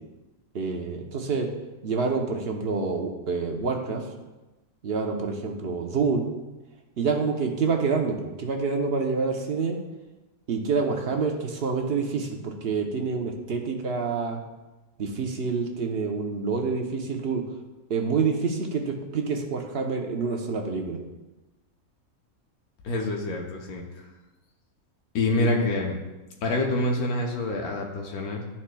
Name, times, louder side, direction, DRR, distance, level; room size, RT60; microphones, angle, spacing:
voice 1, 0.5-1.5 1.8-4.0 4.8-6.3 7.0-9.8 10.5-14.4 15.0-17.4 17.9-21.0 25.4-25.5, right 4 dB, 55° right, 2 dB, 0.8 m, -27 dB
voice 2, 22.8-23.8 25.1-25.9 26.4-28.4, left 2 dB, 85° left, 0 dB, 1.3 m, -26 dB
11.5 x 4.3 x 2.2 m, 1.1 s
omnidirectional pair, 1.5 m